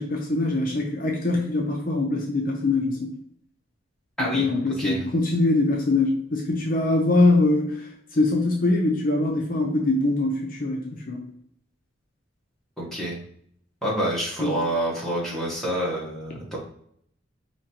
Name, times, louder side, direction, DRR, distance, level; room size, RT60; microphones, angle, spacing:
voice 1, 0.0-3.1 4.2-11.2 14.4-14.5, left 2 dB, 45° left, 0 dB, 0.6 m, -23 dB
voice 2, 4.2-4.5 4.8-5.1 12.8-13.2 13.8-16.6, right 1 dB, ahead, -6 dB, 1.3 m, -27 dB
5.1 x 2.8 x 2.9 m, 0.68 s
head